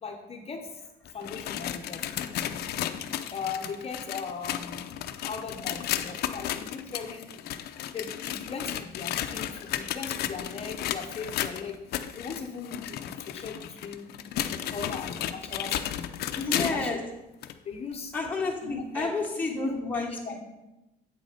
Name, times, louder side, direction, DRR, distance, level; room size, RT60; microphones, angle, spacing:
voice 1, 0.0-0.7 1.1-2.7 3.3-4.9 5.2-7.5 7.9-11.8 12.1-14.1 14.4-16.0 16.4-17.1 17.6-18.1 18.6-19.8 20.2-20.4, left 5 dB, 35° left, 4 dB, 0.8 m, -39 dB
sound 1, 1.1-16.9 17.4-17.5 18.2-18.3 19.2-19.3, left 11 dB, 70° left, 0.5 m, -34 dB
voice 2, 16.3-17.0 18.1-20.1, left 3 dB, 10° left, -3 dB, 1.3 m, -30 dB
8.4 x 4.0 x 5.0 m, 0.96 s
cardioid pair, 110°, 17 cm